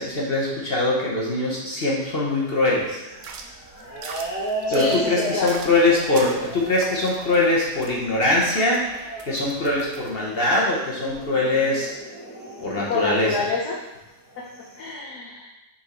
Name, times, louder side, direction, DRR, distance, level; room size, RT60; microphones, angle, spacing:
voice 1, 0.0-3.0 4.7-8.8 9.3-11.9 12.6-13.4, left 2 dB, 40° left, -4 dB, 1.0 m, -22 dB
sound 1, 2.3-13.5 14.3-15.0, right 2 dB, 10° left, 1.1 m, -36 dB
sound 2, 3.1-10.1, right 4 dB, 60° right, 0.9 m, -40 dB
voice 2, 4.7-5.0 5.3-5.7 12.9-13.8 14.4-14.5 14.8-15.5, left 5 dB, 70° left, -3 dB, 1.3 m, -27 dB
6.4 x 4.4 x 4.3 m, 0.99 s
omnidirectional pair, 1.7 m